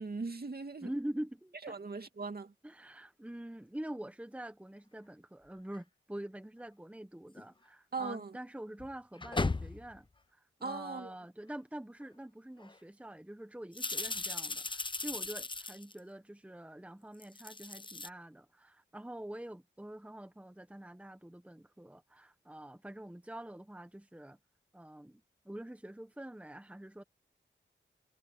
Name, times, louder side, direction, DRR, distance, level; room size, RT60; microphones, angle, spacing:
voice 1, 0.0-0.9 1.6-2.5 7.9-8.3 10.6-11.1, right 4 dB, 50° right, 2.4 m, -39 dB
voice 2, 0.8-1.7 2.6-10.1 10.3-24.4 24.7-27.0, right 1 dB, 5° right, 1.1 m, -45 dB
sound 1, 5.7-5.8 7.4-7.5 8.8-10.0 12.0-12.1 12.6-12.8 13.7-16.0 17.1-18.1, left 3 dB, 25° left, 0.7 m, -37 dB
wide cardioid pair, 85°, 20 cm